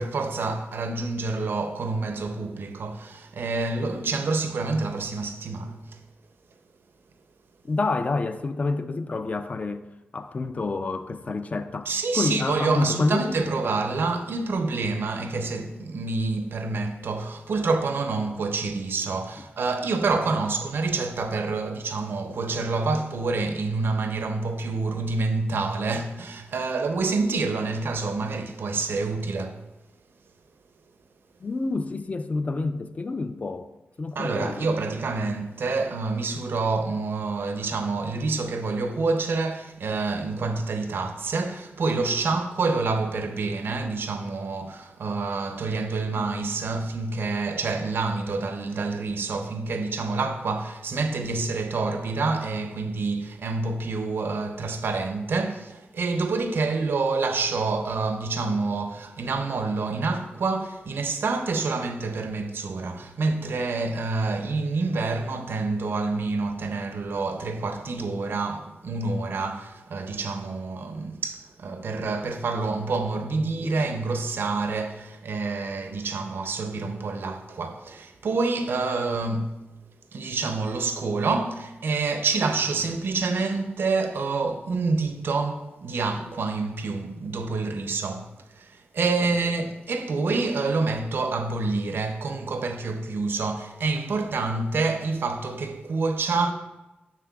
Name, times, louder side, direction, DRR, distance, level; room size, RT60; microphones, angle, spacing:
voice 1, 0.0-6.0 11.9-29.6 34.1-79.6 80.1-96.5, right 3 dB, 75° right, 0.5 m, -27 dB
voice 2, 7.6-9.8 10.1-13.6 31.4-33.7 34.0-34.7 73.6-73.8, left 3 dB, 40° left, 0.4 m, -28 dB
7.4 x 5.9 x 2.3 m
cardioid pair, 70°, 4 cm